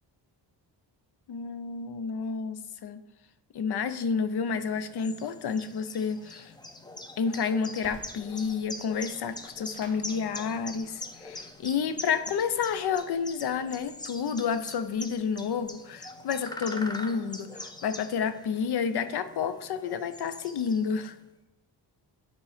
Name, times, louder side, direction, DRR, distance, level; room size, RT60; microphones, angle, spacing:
voice 1, 1.3-3.0 3.5-6.5 7.2-21.2, left 6 dB, 65° left, 12 dB, 0.6 m, -30 dB
sound 1, 4.6-21.2, left 2 dB, 10° left, 0.4 m, -43 dB
Crackle, 7.8-15.7, left 1 dB, 30° left, 2.7 m, -57 dB
10.0 x 4.2 x 4.9 m, 0.97 s
wide cardioid pair, 160°, 42 cm